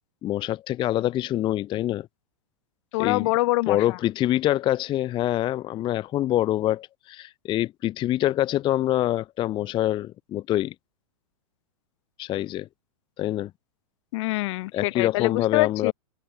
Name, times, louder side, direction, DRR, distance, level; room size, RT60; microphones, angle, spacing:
voice 1, 0.2-2.1 3.0-3.3 3.7-10.7 12.2-12.7 13.2-13.5 14.7-15.9, left 13 dB, 25° left, 0.5 m, -25 dB
voice 2, 2.9-4.0 14.1-15.9, left 21 dB, 55° left, 1.0 m, -25 dB
hypercardioid pair, 115°, 18 cm